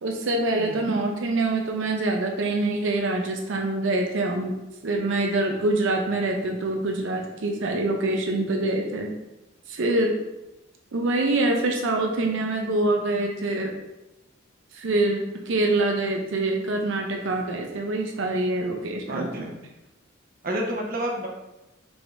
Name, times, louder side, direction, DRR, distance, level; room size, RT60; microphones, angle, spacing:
voice 1, 0.0-4.5 4.8-9.1 9.7-10.1 10.9-13.7 14.7-19.5, right 2 dB, 65° right, 2 dB, 0.5 m, -25 dB
voice 2, 19.1-19.5 20.4-21.3, right 1 dB, 45° right, -2 dB, 0.9 m, -29 dB
5.8 x 3.5 x 2.6 m, 0.95 s
head